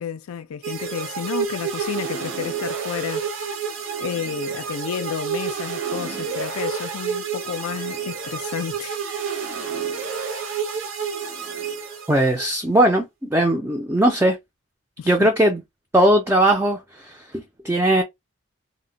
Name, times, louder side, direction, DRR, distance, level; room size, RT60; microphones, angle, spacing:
voice 1, 0.0-3.6 4.0-9.0 9.5-9.7 15.0-15.3, left 8 dB, 85° left, 0.4 m, -31 dB
sound 1, 0.6-12.5, right 6 dB, 60° right, 0.6 m, -29 dB
voice 2, 12.1-14.4 15.1-15.6 15.9-18.0, right 1 dB, 10° right, 0.3 m, -19 dB
2.1 x 2.0 x 3.7 m
head